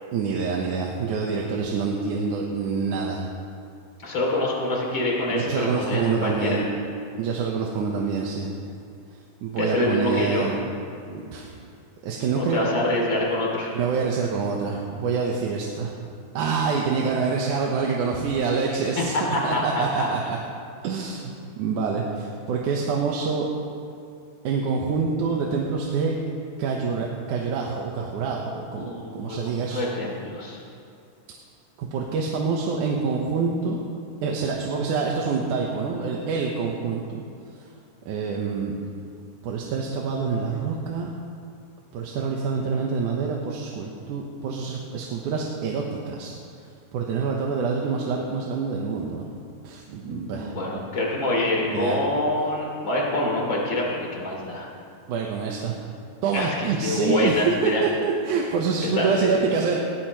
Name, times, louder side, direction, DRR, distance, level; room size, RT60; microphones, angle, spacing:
voice 1, 0.1-3.2 5.3-6.7 7.2-8.5 9.4-10.6 11.1-11.5 12.0-12.6 13.7-16.0 16.3-19.1 19.4-20.4 20.8-23.5 24.4-26.2 26.6-29.8 31.8-33.8 34.2-37.2 38.1-38.7 39.4-41.1 41.9-46.4 46.9-49.3 49.6-50.5 51.7-52.0 55.1-55.8 56.2-59.8, right 5 dB, 90° right, -1 dB, 2.6 m, -26 dB
voice 2, 4.0-6.7 9.6-10.5 12.3-13.7 19.0-20.1 28.7-30.6 50.0-54.7 56.3-57.8 58.8-59.3, left 1 dB, 40° left, -3 dB, 3.5 m, -26 dB
19.0 x 18.0 x 3.1 m, 2.4 s
omnidirectional pair, 3.5 m